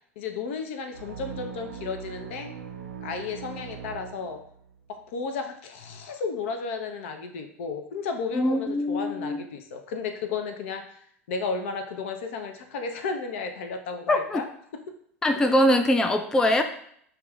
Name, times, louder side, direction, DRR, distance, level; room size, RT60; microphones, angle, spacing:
voice 1, 0.2-2.5 3.0-4.4 4.9-11.0 11.3-14.5 14.7-14.8 15.4-15.5, left 4 dB, 60° left, 6 dB, 0.6 m, -33 dB
sound 1, 0.9-4.8, right 7 dB, 80° right, 0.5 m, -40 dB
voice 2, 8.3-9.5 14.1-14.4 15.2-16.6, left 1 dB, 10° left, 6 dB, 0.3 m, -22 dB
6.8 x 2.4 x 2.3 m, 0.67 s
figure-of-eight pair, 85°, 8 cm